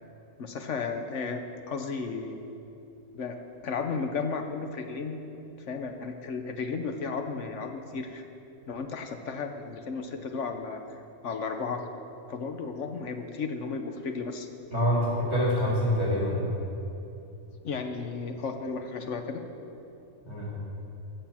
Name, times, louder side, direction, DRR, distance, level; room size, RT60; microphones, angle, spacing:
voice 1, 0.4-1.4 1.7-2.4 3.1-5.2 5.7-8.2 8.7-10.8 11.2-11.8 12.3-14.5 17.6-19.4, left 4 dB, 65° left, 6 dB, 1.2 m, -34 dB
voice 2, 14.7-16.4 20.2-20.5, equal, 20° left, -6 dB, 3.5 m, -26 dB
15.0 x 6.9 x 7.3 m, 2.8 s
omnidirectional pair, 1.4 m